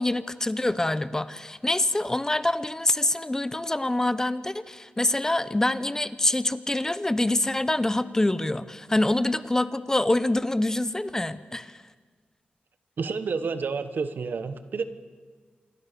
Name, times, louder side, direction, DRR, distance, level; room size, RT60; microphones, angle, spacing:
voice 1, 0.0-11.8, left 1 dB, 15° left, 14 dB, 0.9 m, -25 dB
voice 2, 13.0-14.8, right 5 dB, 70° right, 11 dB, 1.4 m, -29 dB
27.5 x 22.5 x 6.9 m, 1.5 s
wide cardioid pair, 100°, 3 cm